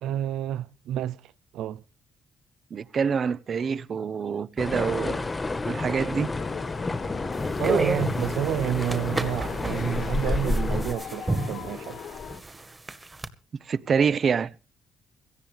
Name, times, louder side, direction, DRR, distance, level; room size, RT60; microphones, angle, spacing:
voice 1, 0.0-1.8 7.6-12.0, right 11 dB, 85° right, 0.6 m, -29 dB
voice 2, 2.7-5.2 5.7-6.3 13.6-14.5, right 6 dB, 50° right, 0.8 m, -26 dB
sound 1, 4.6-10.9, left 2 dB, 25° left, 1.3 m, -29 dB
sound 2, 6.3-12.4, left 8 dB, 65° left, 1.6 m, -40 dB
sound 3, 7.3-13.3, right 2 dB, 20° right, 1.8 m, -33 dB
17.5 x 14.5 x 3.4 m
cardioid pair, 90°, 0 cm